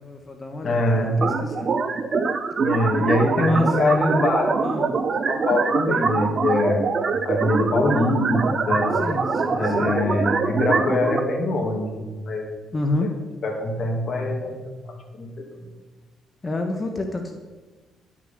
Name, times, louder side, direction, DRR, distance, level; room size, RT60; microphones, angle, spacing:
voice 1, 0.0-1.8 3.4-3.8 4.6-4.9 9.0-9.9 12.7-13.1 16.4-17.3, left 2 dB, 25° left, 4 dB, 1.2 m, -30 dB
voice 2, 0.6-1.2 2.6-4.5 5.3-6.8 7.2-9.0 9.5-12.5 13.4-14.5 14.9-15.5, left 2 dB, 45° left, 0 dB, 2.4 m, -23 dB
sound 1, 1.2-11.2, right 4 dB, 45° right, 0.8 m, -24 dB
11.5 x 6.2 x 7.5 m, 1.3 s
cardioid pair, 90°, 0 cm